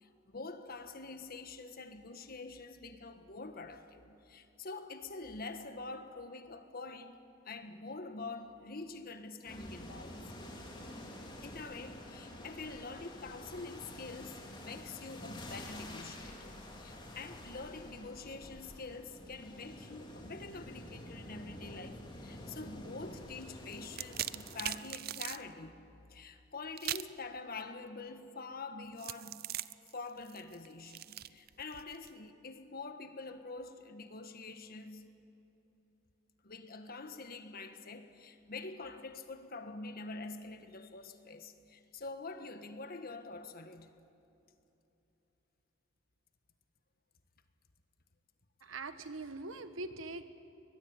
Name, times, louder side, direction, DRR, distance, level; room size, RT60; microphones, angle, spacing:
voice 1, 0.0-10.3 11.4-25.8 26.1-29.6 29.9-35.2 36.4-44.0, left 3 dB, 50° left, 1.5 m, -46 dB
sound 1, 9.5-24.8, left 1 dB, 25° left, 3.2 m, -48 dB
sound 2, 23.7-25.4 26.8-27.2 29.0-32.1, right 13 dB, 50° right, 0.5 m, -41 dB
voice 2, 48.6-50.2, right 3 dB, 85° right, 1.4 m, -42 dB
23.0 x 21.0 x 8.9 m
head